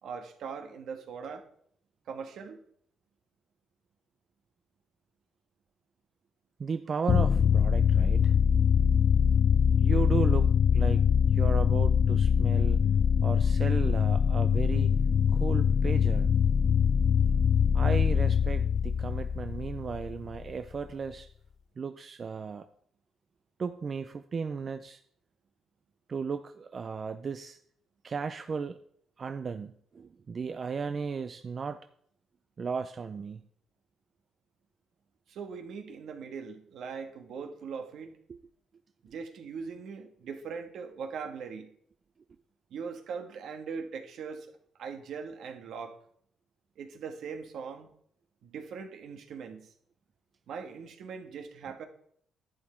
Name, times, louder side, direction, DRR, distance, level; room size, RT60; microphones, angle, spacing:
voice 1, 0.0-1.5 2.1-2.6 35.3-38.1 39.0-41.7 42.7-44.5 44.8-46.0 46.8-47.9 48.4-49.7 50.5-51.9, right 6 dB, 75° right, 6 dB, 1.4 m, -40 dB
voice 2, 6.6-8.4 9.8-11.1 11.3-12.8 13.2-14.9 15.3-16.3 17.7-21.3 21.8-22.7 23.6-25.0 26.1-27.6 28.0-28.8 29.2-31.9 32.6-33.4 38.3-38.4, right 5 dB, 40° right, 9 dB, 0.5 m, -35 dB
sound 1, 7.1-20.5, left 7 dB, 50° left, 0.3 m, -23 dB
11.0 x 8.6 x 4.4 m, 0.65 s
cardioid pair, 90°, 0 cm